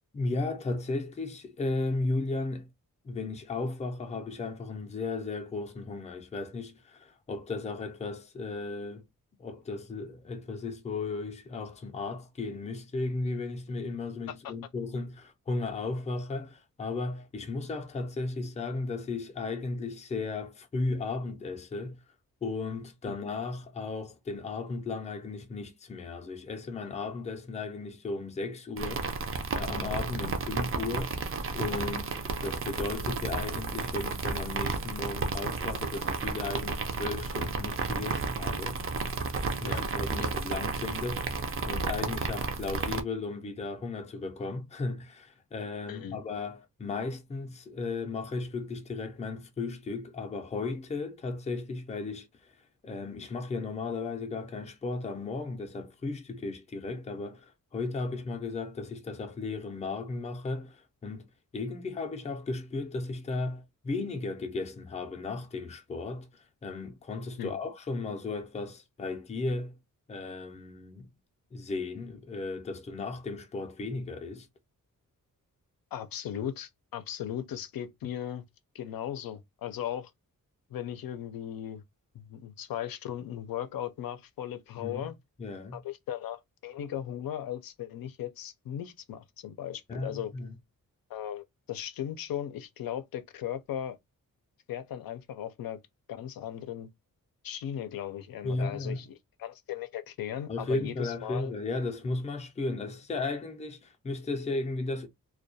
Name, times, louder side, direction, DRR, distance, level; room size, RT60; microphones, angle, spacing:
voice 1, 0.1-2.7 3.0-9.0 9.4-22.0 22.4-29.1 29.6-31.2 31.5-38.8 39.6-41.3 41.7-52.3 52.8-61.3 61.5-66.3 66.6-69.8 70.1-71.1 71.5-74.5 84.8-85.1 85.4-85.8 89.9-90.5 98.4-99.0 100.5-105.1, left 3 dB, 20° left, 0.4 m, -35 dB
sound 1, 28.8-43.0, right 4 dB, 40° right, 0.4 m, -32 dB
voice 2, 45.9-46.2 67.4-67.6 75.9-78.4 78.7-80.1 80.7-81.8 82.1-85.1 85.7-90.3 91.1-94.0 94.7-95.8 96.1-96.9 97.4-99.1 99.4-101.5, left 10 dB, 85° left, 0.5 m, -37 dB
2.2 x 2.2 x 2.6 m
wide cardioid pair, 130°, 34 cm